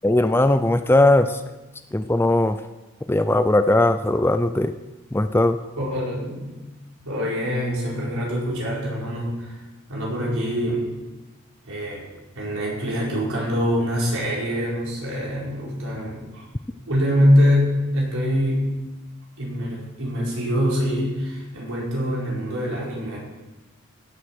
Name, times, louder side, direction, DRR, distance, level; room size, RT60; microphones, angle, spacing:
voice 1, 0.0-1.4 1.9-2.6 3.1-4.7 5.1-5.6, left 1 dB, 10° left, 10 dB, 0.4 m, -19 dB
voice 2, 5.8-6.5 7.0-9.6 9.9-10.9 11.6-12.1 12.3-16.4 16.9-18.7 19.4-23.2, equal, 80° right, -4 dB, 5.0 m, -24 dB
16.5 x 8.1 x 6.1 m, 1.1 s
head